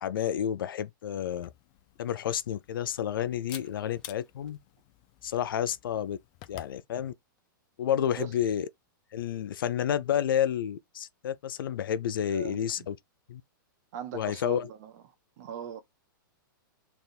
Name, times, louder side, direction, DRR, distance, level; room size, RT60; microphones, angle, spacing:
voice 1, 0.0-1.5 2.0-4.6 5.2-6.2 6.5-7.1 7.8-8.7 9.1-13.0 13.3-13.4 14.1-14.7, left 9 dB, 80° left, 0.5 m, -30 dB
Camera, 1.3-6.8, left 16 dB, 35° left, 0.4 m, -51 dB
Fire, 3.4-12.6, left 4 dB, 5° left, 1.1 m, -60 dB
voice 2, 12.3-12.9 13.9-15.0 15.4-15.8, right 9 dB, 50° right, 1.0 m, -40 dB
3.5 x 2.5 x 4.1 m
hypercardioid pair, 150°, 11 cm